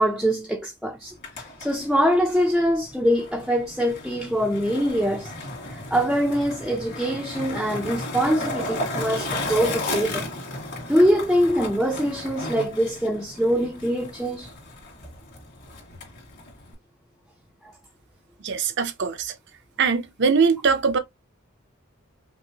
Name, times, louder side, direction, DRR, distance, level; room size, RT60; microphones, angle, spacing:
voice 1, 0.0-5.3 5.7-10.3 10.9-14.5 17.6-17.7, equal, ahead, 0.5 m, -23 dB
Skateboard, 1.0-16.7, left 1 dB, 55° left, 2.0 m, -34 dB
voice 2, 18.4-19.3 19.8-21.0, right 5 dB, 60° right, 0.6 m, -22 dB
5.4 x 2.0 x 2.8 m
head